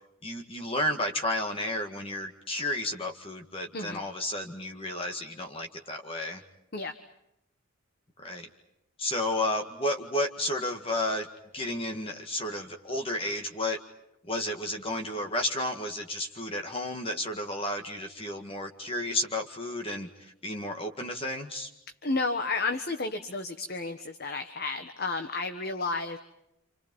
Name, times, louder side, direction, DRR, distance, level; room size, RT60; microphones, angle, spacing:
voice 1, 0.2-6.4 8.2-8.5 9.0-11.3 11.5-13.8 14.3-21.7, left 1 dB, 25° left, 3 dB, 2.0 m, -32 dB
voice 2, 22.0-26.2, left 3 dB, 45° left, 7 dB, 1.4 m, -32 dB
28.5 x 28.5 x 5.5 m, 0.82 s
head